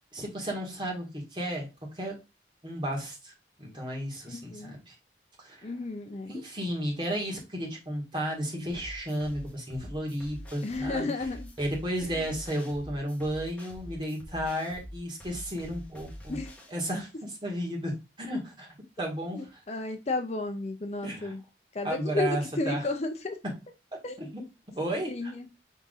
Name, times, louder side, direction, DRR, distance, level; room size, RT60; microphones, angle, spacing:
voice 1, 0.1-1.7 1.9-2.2 2.6-5.0 5.4-5.7 6.3-11.1 11.6-16.4 16.7-19.6 21.0-21.3 21.8-22.9 24.2-24.4 24.8-25.3, equal, 25° right, 1.8 m, -33 dB
voice 2, 4.3-4.7 5.6-6.3 10.6-11.5 12.0-12.2 16.3-16.5 19.3-21.4 21.7-23.4 24.0-24.2 25.1-25.5, left 3 dB, 40° left, 0.5 m, -33 dB
sound 1, 8.7-16.7, equal, 10° left, 1.1 m, -45 dB
5.7 x 3.6 x 2.5 m
head